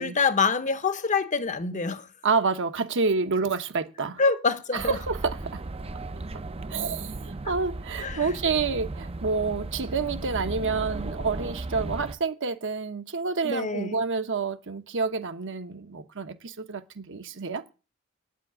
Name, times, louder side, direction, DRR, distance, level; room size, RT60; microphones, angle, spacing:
voice 1, 0.0-2.1 4.2-5.0 8.0-8.3 13.4-14.0, left 4 dB, 35° left, 0.9 m, -26 dB
voice 2, 2.2-4.2 4.7-5.6 6.7-17.6, right 4 dB, 60° right, 1.1 m, -28 dB
sound 1, 4.8-12.1, right 2 dB, 25° right, 0.6 m, -36 dB
9.3 x 7.5 x 8.6 m
head